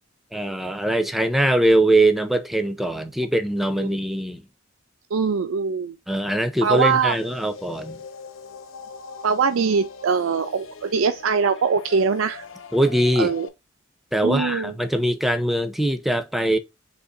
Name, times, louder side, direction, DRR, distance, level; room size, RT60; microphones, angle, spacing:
voice 1, 0.3-4.4 6.1-8.0 12.7-13.3 14.1-16.6, right 1 dB, ahead, 0.5 m, -22 dB
voice 2, 5.1-5.9 6.6-7.1 9.2-12.4 13.2-13.5 14.2-14.7, right 5 dB, 85° right, 0.4 m, -22 dB
sound 1, 6.6-13.5, left 5 dB, 75° left, 0.6 m, -41 dB
4.0 x 2.9 x 3.7 m
head